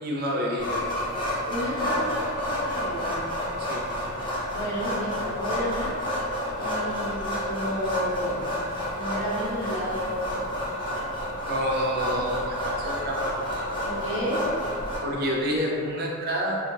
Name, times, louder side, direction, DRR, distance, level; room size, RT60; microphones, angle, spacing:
voice 1, 0.0-0.8 3.6-3.8 11.4-13.3 15.0-16.6, equal, 45° right, -2 dB, 0.4 m, -28 dB
sound 1, 0.6-15.0, left 1 dB, 25° left, 0.6 m, -30 dB
voice 2, 1.5-3.1 4.5-5.9 6.6-8.4 8.9-10.5 13.8-14.5, equal, 65° left, -9 dB, 1.2 m, -31 dB
2.7 x 2.3 x 2.8 m, 2.3 s
head